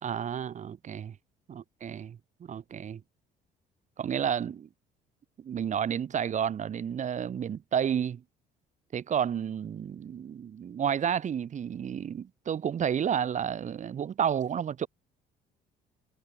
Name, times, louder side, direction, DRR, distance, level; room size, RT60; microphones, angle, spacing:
voice 1, 0.0-1.2 1.5-3.0 4.0-4.7 5.4-8.2 8.9-14.9, right 8 dB, 45° right, 4.1 m, -31 dB
cardioid pair, 110°, 17 cm